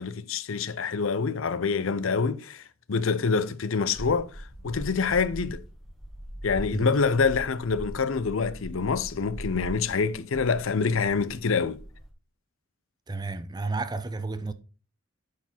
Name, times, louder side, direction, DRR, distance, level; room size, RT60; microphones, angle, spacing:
voice 1, 0.0-5.6 6.4-11.8, left 5 dB, 65° left, 0.6 m, -26 dB
sound 1, 3.9-12.1, equal, ahead, 1.3 m, -41 dB
voice 2, 13.1-14.5, right 3 dB, 20° right, 0.5 m, -32 dB
9.5 x 4.6 x 4.4 m
head